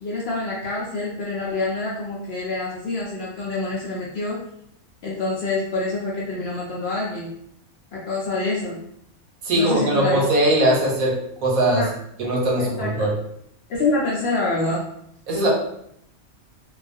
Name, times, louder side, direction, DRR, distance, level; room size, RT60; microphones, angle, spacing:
voice 1, 0.0-4.4 5.0-7.3 7.9-8.8 9.5-10.2 11.7-11.9 12.6-13.1 13.7-14.8, left 2 dB, 65° left, -5 dB, 0.6 m, -26 dB
voice 2, 9.4-11.8 12.2-13.1 15.3-15.5, right 1 dB, 80° right, -3 dB, 1.2 m, -20 dB
2.4 x 2.3 x 2.5 m, 0.73 s
omnidirectional pair, 1.5 m